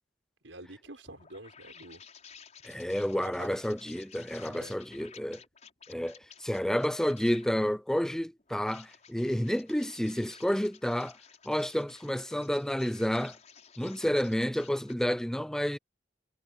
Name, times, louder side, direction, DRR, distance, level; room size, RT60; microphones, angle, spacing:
voice 1, 0.4-2.0 3.1-3.5 4.5-4.7, right 2 dB, 85° right, 6.0 m, -47 dB
sound 1, 0.6-7.6 8.4-14.9, left 7 dB, 40° left, 6.0 m, -54 dB
voice 2, 2.6-5.4 5.9-11.2 11.5-13.4 13.8-15.8, equal, 5° left, 0.4 m, -30 dB
head